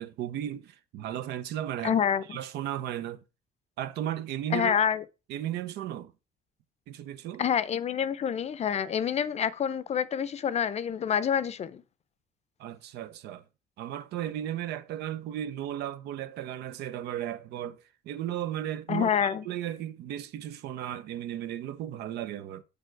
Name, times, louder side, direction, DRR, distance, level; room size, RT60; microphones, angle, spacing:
voice 1, 0.0-2.0 2.3-3.2 3.8-4.7 5.3-6.1 6.9-7.4 12.6-13.4 13.8-22.6, right 11 dB, 80° right, 0.7 m, -35 dB
voice 2, 1.8-2.4 4.5-5.0 7.4-11.8 18.9-19.4, left 8 dB, 40° left, 0.6 m, -27 dB
6.9 x 5.2 x 4.6 m
cardioid pair, 110°, 17 cm